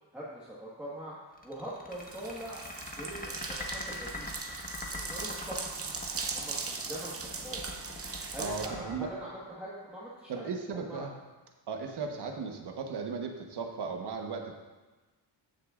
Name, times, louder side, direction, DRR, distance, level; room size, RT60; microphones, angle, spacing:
voice 1, 0.1-1.2 1.4-2.6 3.0-4.4 4.9-5.8 6.1-7.6 8.3-10.5 10.9-11.0 12.0-12.1, right 1 dB, 5° right, -8 dB, 1.6 m, -43 dB
sound 1, 1.4-10.0, left 2 dB, 20° left, 1.3 m, -42 dB
sound 2, 1.9-8.7, right 4 dB, 35° right, 0.8 m, -39 dB
voice 2, 8.4-9.1 10.3-11.1 11.7-14.6, right 5 dB, 65° right, 3 dB, 1.2 m, -36 dB
14.5 x 6.6 x 2.5 m, 1.2 s
wide cardioid pair, 120°, 42 cm